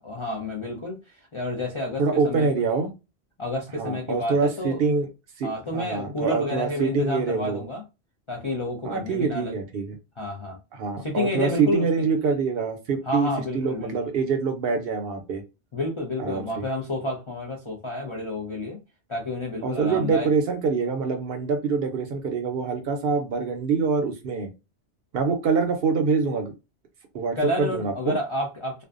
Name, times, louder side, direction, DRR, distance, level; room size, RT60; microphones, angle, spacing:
voice 1, 0.0-2.5 3.4-4.8 5.4-7.8 8.3-9.6 10.2-10.6 11.0-12.1 13.0-13.9 15.7-18.8 19.1-20.3 27.3-28.8, left 1 dB, 45° left, 0.4 m, -30 dB
voice 2, 2.0-2.9 3.8-5.1 5.4-5.5 5.7-7.6 8.8-10.0 10.7-13.3 13.5-15.4 16.2-16.6 19.6-24.5 25.1-26.5 27.1-28.1, right 5 dB, 65° right, 0.7 m, -25 dB
2.5 x 2.1 x 2.4 m
omnidirectional pair, 1.2 m